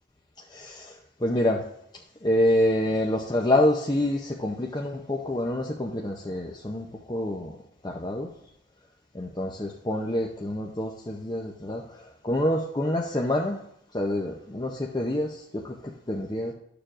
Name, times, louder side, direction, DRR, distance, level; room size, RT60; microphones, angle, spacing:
voice 1, 0.4-1.7 1.9-7.6 7.8-8.3 9.1-13.6 13.9-16.5, left 1 dB, 20° left, 0 dB, 0.6 m, -27 dB
13.0 x 6.8 x 2.5 m, 0.76 s
head